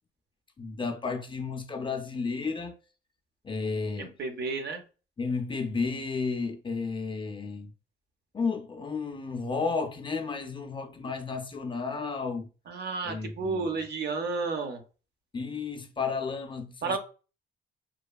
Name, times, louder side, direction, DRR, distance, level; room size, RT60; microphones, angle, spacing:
voice 1, 0.6-2.8 3.4-4.2 5.2-7.7 8.3-12.5 13.0-13.8 15.3-17.0, left 4 dB, 25° left, 0.4 m, -32 dB
voice 2, 4.0-4.8 12.7-14.8 16.8-17.0, right 4 dB, 55° right, 0.6 m, -32 dB
2.9 x 2.2 x 2.3 m
cardioid pair, 90°, 20 cm